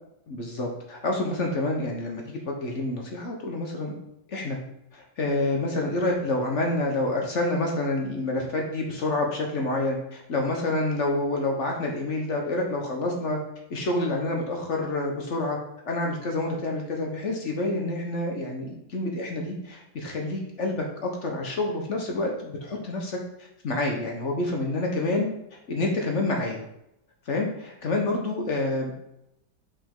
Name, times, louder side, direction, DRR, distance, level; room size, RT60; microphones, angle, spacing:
voice 1, 0.3-3.9 4.3-4.6 4.9-13.4 13.7-15.6 15.8-25.3 25.7-26.6 27.3-29.0, left 2 dB, 45° left, 1 dB, 1.1 m, -28 dB
5.2 x 5.0 x 3.8 m, 0.81 s
omnidirectional pair, 2.0 m